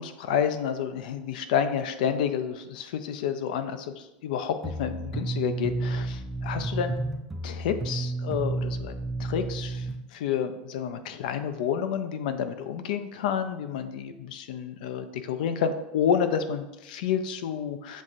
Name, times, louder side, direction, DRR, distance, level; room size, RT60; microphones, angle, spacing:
voice 1, 0.0-6.9 7.4-8.9 9.2-18.0, left 8 dB, 80° left, 10 dB, 0.4 m, -29 dB
sound 1, 4.6-10.0, right 2 dB, 5° right, 0.3 m, -31 dB
7.1 x 2.5 x 2.6 m, 0.94 s
supercardioid pair, 165°, 5 cm